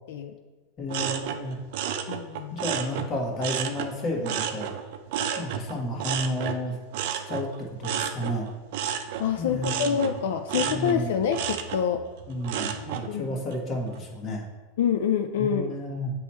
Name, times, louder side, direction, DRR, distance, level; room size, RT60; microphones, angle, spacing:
voice 1, 0.8-1.6 2.5-4.7 5.4-6.8 7.1-7.5 7.8-8.5 9.4-10.0 10.5-11.2 12.3-14.4 15.4-16.1, left 1 dB, 30° left, -1 dB, 1.4 m, -31 dB
sound 1, 0.9-3.9 4.2-13.1 13.5-14.0, right 8 dB, 65° right, 0.5 m, -32 dB
voice 2, 2.1-2.6 9.2-12.0 13.1-13.4 14.8-15.7, left 8 dB, 75° left, 6 dB, 0.4 m, -26 dB
8.2 x 3.0 x 4.3 m, 1.2 s
supercardioid pair, 140°, 0 cm